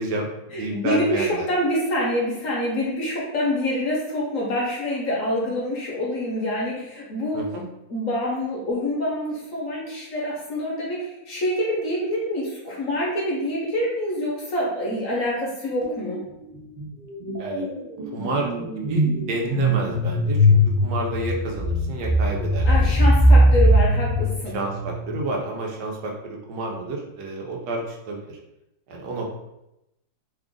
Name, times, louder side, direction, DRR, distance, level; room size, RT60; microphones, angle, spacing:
voice 1, 0.0-1.5 7.3-7.6 17.4-17.6 18.1-18.5 18.9-20.6 20.8-22.9 24.5-28.4 28.9-29.3, right 2 dB, 75° right, -1 dB, 1.3 m, -30 dB
voice 2, 0.5-7.5 7.9-16.2 22.6-24.5, left 1 dB, 55° left, -4 dB, 1.1 m, -26 dB
sound 1, 15.8-16.1 16.4-25.2, equal, 45° right, 0.5 m, -20 dB
3.3 x 2.4 x 3.7 m, 0.88 s
omnidirectional pair, 2.0 m